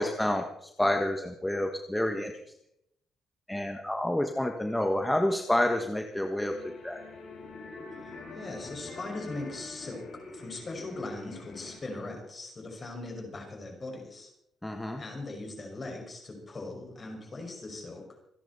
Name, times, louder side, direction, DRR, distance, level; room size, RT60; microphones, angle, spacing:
voice 1, 0.0-2.3 3.5-7.0 14.6-15.0, left 1 dB, 10° left, 4 dB, 1.4 m, -29 dB
sound 1, 6.5-11.8, left 3 dB, 65° left, 5.3 m, -45 dB
voice 2, 8.0-14.3 15.0-18.1, left 2 dB, 35° left, 2 dB, 5.8 m, -40 dB
27.0 x 10.5 x 4.2 m, 0.77 s
cardioid pair, 100°, 0 cm